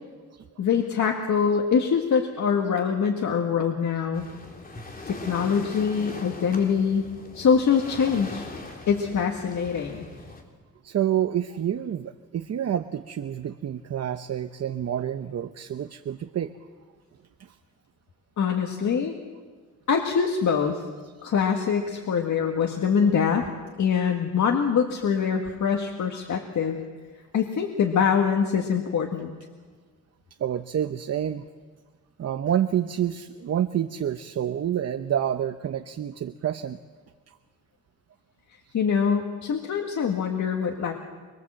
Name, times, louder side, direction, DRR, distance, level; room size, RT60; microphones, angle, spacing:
voice 1, 0.6-4.3 5.1-7.1 7.3-8.5 8.9-10.1 18.4-19.2 19.9-20.8 21.2-23.5 23.8-26.8 27.3-29.3 38.7-40.9, left 6 dB, 70° left, 2 dB, 2.0 m, -24 dB
Waves surf, 4.1-10.4, left 2 dB, 30° left, 3.6 m, -41 dB
voice 2, 10.8-16.5 17.4-17.5 30.4-31.4 32.2-36.8, right 10 dB, 55° right, 9 dB, 0.8 m, -28 dB
25.0 x 24.0 x 7.7 m, 1.4 s
wide cardioid pair, 140°, 30 cm